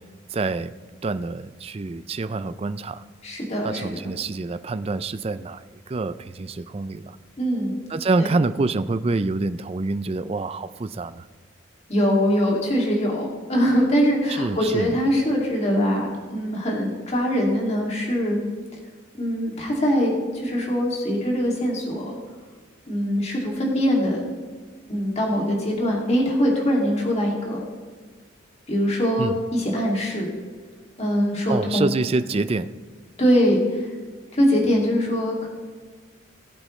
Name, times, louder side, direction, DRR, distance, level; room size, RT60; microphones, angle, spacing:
voice 1, 0.3-0.7 1.0-3.0 3.6-7.2 7.9-11.3 14.3-14.9 29.2-29.4 31.5-32.7, right 3 dB, 30° right, 13 dB, 0.4 m, -26 dB
voice 2, 3.2-3.8 7.4-7.7 8.2-8.3 11.9-18.4 19.2-22.2 22.9-24.2 24.9-27.6 28.7-30.3 31.0-31.9 33.2-33.9 34.3-35.5, equal, 30° left, -2 dB, 2.5 m, -22 dB
19.5 x 8.3 x 3.2 m, 1.5 s
head